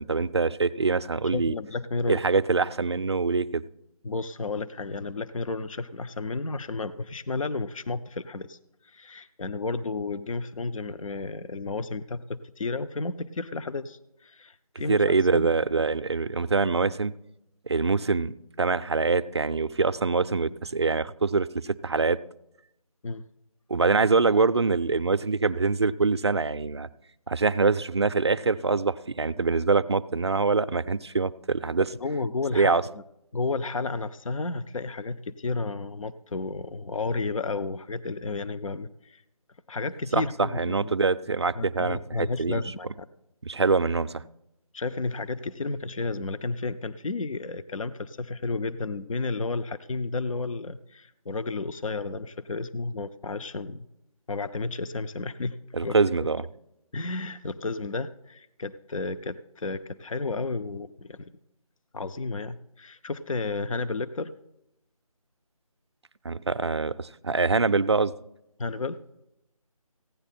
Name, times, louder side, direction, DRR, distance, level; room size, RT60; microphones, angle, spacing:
voice 1, 0.0-1.5 2.1-3.6 14.9-17.1 17.7-22.2 23.7-26.9 27.3-31.8 32.5-32.8 40.1-42.6 43.5-44.2 55.7-56.4 66.2-68.1, right 4 dB, 45° right, 13 dB, 0.4 m, -24 dB
voice 2, 1.3-2.2 4.0-8.6 8.8-15.5 23.0-23.2 31.8-33.0 33.3-39.2 39.7-41.0 41.6-42.9 44.7-53.9 54.3-55.6 55.8-55.9 56.9-61.3 61.9-64.3 68.6-69.0, left 3 dB, 60° left, 12 dB, 0.6 m, -32 dB
15.5 x 10.0 x 4.2 m, 0.84 s
figure-of-eight pair, 165°, 19 cm